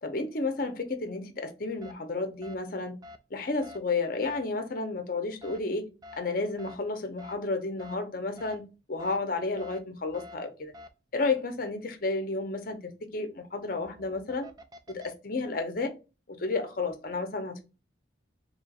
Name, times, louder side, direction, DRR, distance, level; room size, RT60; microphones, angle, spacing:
voice 1, 0.0-3.0 3.3-5.9 6.2-10.7 11.1-14.5 14.9-15.9 16.3-17.6, left 3 dB, 50° left, 0.7 m, -32 dB
sound 1, 1.8-1.9 2.4-2.6 3.0-3.2 3.6-3.8 4.2-4.4 5.4-5.6 6.0-6.2 6.6-6.8 7.2-7.3 7.8-7.9 8.4-8.6 9.0-9.2 9.6-9.8 10.1-10.3 10.7-10.9 13.7-15.1, left 2 dB, 20° right, 0.3 m, -47 dB
3.1 x 2.4 x 4.0 m
head